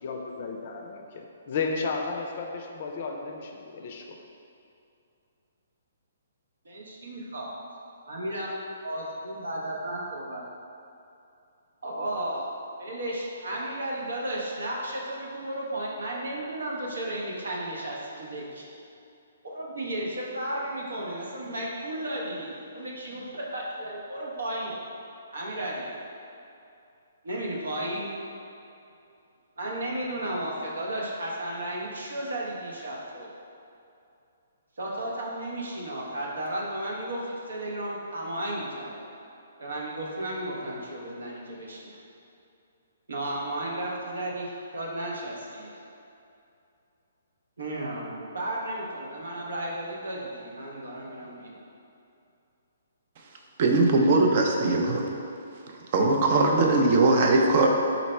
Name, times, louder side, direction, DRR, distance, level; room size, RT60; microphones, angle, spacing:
voice 1, 0.0-4.2, left 4 dB, 50° left, 2 dB, 0.4 m, -33 dB
voice 2, 6.6-7.5 8.1-8.5 8.8-10.4 11.8-12.5 12.8-18.6 19.4-24.8 25.3-25.9 27.2-28.1 29.6-33.3 34.8-39.0 39.6-42.0 43.1-45.8 47.6-51.6, right 1 dB, 80° right, -3 dB, 0.8 m, -34 dB
voice 3, 53.6-55.0 55.9-57.7, right 2 dB, 45° right, 2 dB, 0.5 m, -20 dB
4.0 x 2.0 x 4.3 m, 2.7 s
hypercardioid pair, 145°, 0 cm